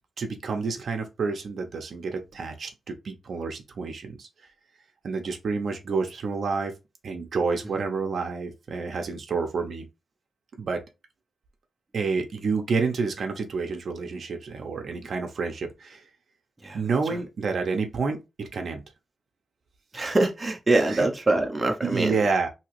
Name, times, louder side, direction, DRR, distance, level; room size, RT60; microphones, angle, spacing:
voice 1, 0.2-4.3 5.0-6.7 7.0-9.9 10.6-10.8 11.9-16.0 16.7-18.8 20.8-21.1 21.8-22.5, right 4 dB, 60° right, 0.6 m, -29 dB
voice 2, 19.9-22.2, right 2 dB, 20° right, 0.6 m, -24 dB
2.9 x 2.8 x 2.9 m
wide cardioid pair, 135°, 0 cm